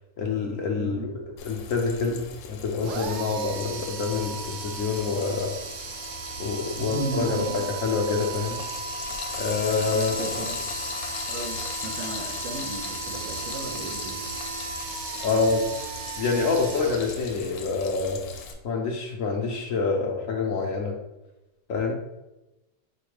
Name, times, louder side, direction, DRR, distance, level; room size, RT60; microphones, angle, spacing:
voice 1, 0.2-5.5 6.4-8.6 9.4-10.2 15.2-15.6 16.2-18.2 18.6-20.9 21.7-22.0, left 4 dB, 65° left, 1 dB, 0.9 m, -27 dB
Frying (food), 1.4-18.5, left 5 dB, 85° left, 1.3 m, -39 dB
sound 1, 2.8-17.7, right 4 dB, 70° right, 1.1 m, -36 dB
voice 2, 6.8-7.6 9.8-10.6 11.3-14.2, right 2 dB, 90° right, 2 dB, 1.6 m, -35 dB
5.1 x 2.2 x 4.7 m, 0.96 s
omnidirectional pair, 1.9 m